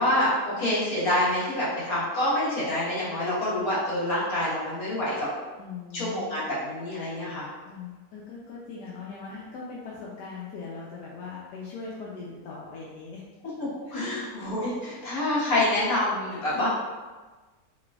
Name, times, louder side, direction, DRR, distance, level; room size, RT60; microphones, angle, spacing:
voice 1, 0.0-5.3 5.9-7.5 13.6-16.7, left 1 dB, 60° left, -9 dB, 1.8 m, -27 dB
voice 2, 5.6-6.3 7.7-13.2 13.9-14.3 16.3-16.7, left 4 dB, 85° left, -5 dB, 1.2 m, -39 dB
4.1 x 3.2 x 2.3 m, 1.3 s
omnidirectional pair, 1.8 m